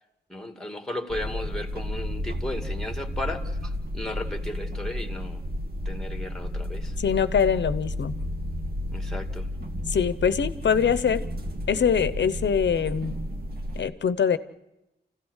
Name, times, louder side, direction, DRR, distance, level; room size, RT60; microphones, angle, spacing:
voice 1, 0.3-5.4 5.8-7.0 8.9-9.5, left 1 dB, 5° left, 4 dB, 2.3 m, -35 dB
sound 1, 1.1-13.8, equal, 60° right, 2.5 m, -32 dB
voice 2, 7.0-8.1 9.9-11.3 11.7-13.1 13.8-14.4, left 7 dB, 85° left, 14 dB, 0.9 m, -23 dB
29.5 x 16.0 x 6.5 m, 0.96 s
wide cardioid pair, 115°, 18 cm